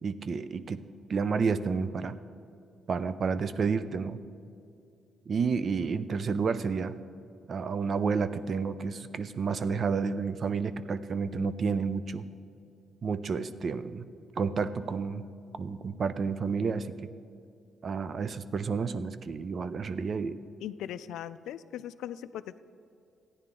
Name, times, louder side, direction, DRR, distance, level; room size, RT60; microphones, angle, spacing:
voice 1, 0.0-0.8 1.1-2.1 2.9-4.2 5.3-6.9 7.5-12.2 13.0-14.0 14.4-15.2 15.6-16.9 17.8-20.4, right 5 dB, 50° right, 13 dB, 0.4 m, -30 dB
voice 2, 20.6-22.6, left 11 dB, 80° left, 14 dB, 0.3 m, -39 dB
14.5 x 9.9 x 3.7 m, 2.5 s
cardioid pair, 90°, 0 cm